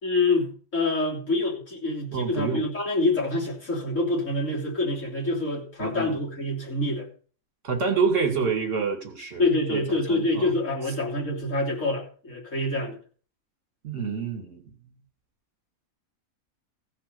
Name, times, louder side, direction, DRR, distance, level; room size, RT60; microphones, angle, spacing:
voice 1, 0.0-7.1 9.4-13.0, left 2 dB, 65° left, -3 dB, 3.7 m, -26 dB
voice 2, 2.1-2.6 5.8-6.2 7.6-10.5 13.8-14.7, right 5 dB, 55° right, 5 dB, 2.6 m, -28 dB
15.5 x 5.2 x 6.9 m, 0.42 s
omnidirectional pair, 1.5 m